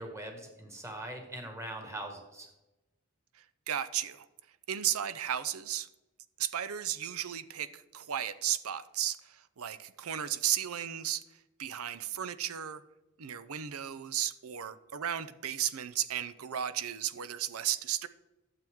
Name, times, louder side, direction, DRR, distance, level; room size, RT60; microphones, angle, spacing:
voice 1, 0.0-2.5, right 1 dB, 15° right, 3 dB, 1.7 m, -41 dB
voice 2, 3.3-4.3 4.7-5.9 6.4-11.2 11.6-12.8 13.2-18.1, right 10 dB, 70° right, 14 dB, 0.6 m, -34 dB
12.0 x 7.7 x 3.6 m, 1.0 s
head